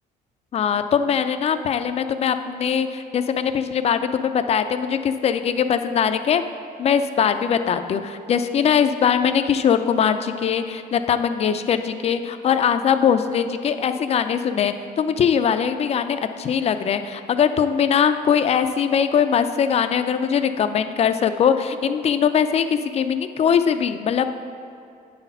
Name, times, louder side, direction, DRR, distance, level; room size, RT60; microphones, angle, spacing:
voice 1, 0.5-6.4 6.8-24.3, left 7 dB, 40° left, 9 dB, 0.4 m, -21 dB
8.9 x 4.0 x 5.5 m, 2.6 s
cardioid pair, 110°, 17 cm